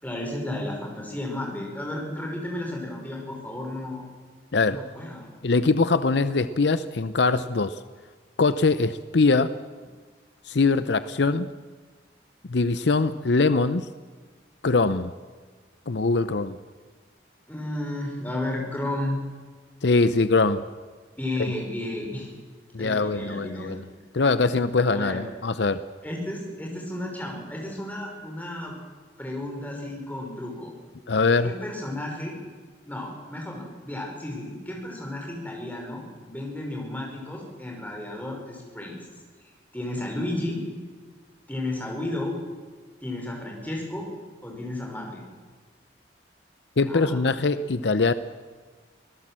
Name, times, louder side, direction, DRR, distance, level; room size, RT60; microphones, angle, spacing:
voice 1, 0.0-4.0 4.7-5.3 17.5-19.2 21.2-22.3 22.8-23.8 25.0-25.2 26.0-28.7 29.2-30.7 31.4-32.4 32.9-39.1 39.4-40.6 41.5-42.4 43.0-44.1 44.4-45.2 46.9-47.3, left 1 dB, 10° left, 0 dB, 5.4 m, -33 dB
voice 2, 4.5-4.9 5.4-7.8 8.4-9.6 10.5-11.5 12.5-13.9 14.6-15.1 15.9-16.6 19.8-20.7 21.4-21.5 22.7-23.9 24.1-25.8 31.1-31.5 46.8-48.1, left 3 dB, 70° left, 13 dB, 0.7 m, -22 dB
24.5 x 18.0 x 7.6 m, 1.5 s
head